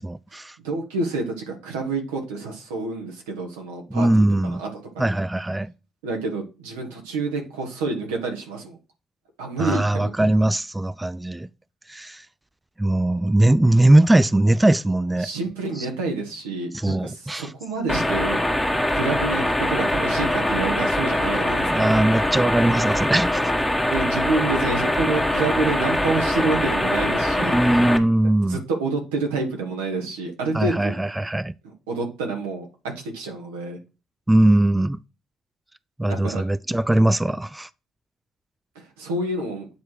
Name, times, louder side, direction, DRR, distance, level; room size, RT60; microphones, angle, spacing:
voice 1, 0.0-0.6 3.9-4.6 5.0-5.7 9.6-11.5 11.9-12.3 12.8-15.3 15.8-15.9 16.7-17.5 21.7-23.5 27.4-28.6 30.5-31.5 34.3-35.0 36.0-37.7, right 1 dB, 15° right, 0.3 m, -20 dB
voice 2, 0.6-5.2 6.0-8.8 9.4-10.1 15.2-18.6 18.9-21.9 23.9-27.6 28.4-31.0 31.6-33.8 36.0-36.4 38.7-39.7, right 3 dB, 85° right, 1.3 m, -28 dB
sound 1, 17.9-28.0, left 1 dB, 5° left, 1.1 m, -23 dB
8.2 x 3.1 x 4.6 m
hypercardioid pair, 50°, 0 cm